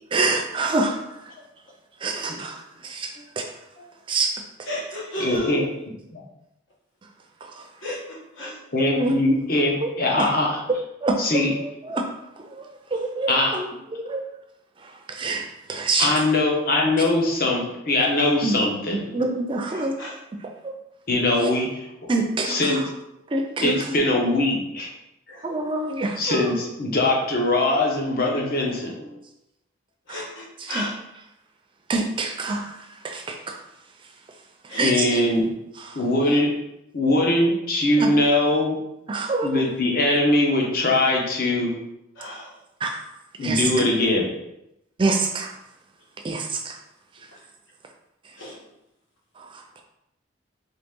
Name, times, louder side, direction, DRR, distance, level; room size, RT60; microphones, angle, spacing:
voice 1, 0.1-1.0 2.0-2.6 2.8-3.1 3.4-3.5 4.1-4.3 8.8-9.2 9.8-10.3 11.0-12.0 12.6-13.7 14.0-14.2 15.1-16.1 18.4-18.5 19.1-19.9 20.6-20.7 22.1-22.8 23.3-23.7 25.4-26.6 30.1-30.2 30.6-30.9 31.9-32.7 33.0-33.6 34.7-35.2 35.8-36.0 38.0-38.1 39.1-39.6 42.8-43.0 43.4-43.6 45.0-45.5 46.2-46.8, right 3 dB, 25° right, 3 dB, 0.4 m, -26 dB
voice 2, 4.7-5.5 7.8-8.6 19.7-20.1 25.3-25.4 30.1-30.9 34.7-34.9 42.2-42.5 48.4-48.6, left 1 dB, 80° left, -3 dB, 1.3 m, -32 dB
voice 3, 5.2-5.6 6.1-6.2 8.7-10.6 11.2-11.5 13.3-13.5 16.0-19.2 21.1-21.9 22.4-22.8 23.6-24.9 26.2-29.2 34.8-35.5 35.9-36.5 36.9-38.8 39.4-41.8 43.4-44.3, left 2 dB, 50° left, -1 dB, 0.9 m, -22 dB
3.9 x 3.2 x 3.6 m, 0.86 s
head